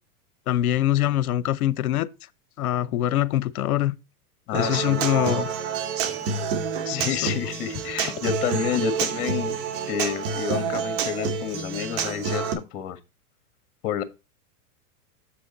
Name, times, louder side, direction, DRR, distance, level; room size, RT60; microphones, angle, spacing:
voice 1, 0.5-2.1 2.6-4.0 4.5-5.5 6.9-7.2, left 13 dB, 75° left, 0.8 m, -23 dB
voice 2, 4.5-5.3 6.8-9.6 9.9-12.4 12.7-13.0 13.8-14.0, left 10 dB, 45° left, 1.5 m, -29 dB
Human voice / Acoustic guitar, 4.5-12.5, right 6 dB, 55° right, 2.0 m, -28 dB
7.5 x 6.3 x 4.0 m
hypercardioid pair, 120°, 45 cm